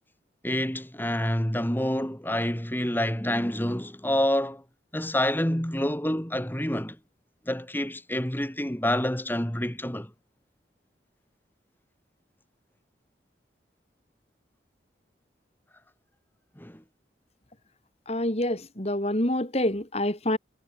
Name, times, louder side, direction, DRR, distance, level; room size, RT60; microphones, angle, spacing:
voice 1, 0.4-4.6 4.9-7.0 7.5-10.1 16.6-16.8, left 1 dB, 10° left, 3.3 m, -27 dB
voice 2, 18.1-20.4, left 1 dB, 35° left, 3.1 m, -27 dB
head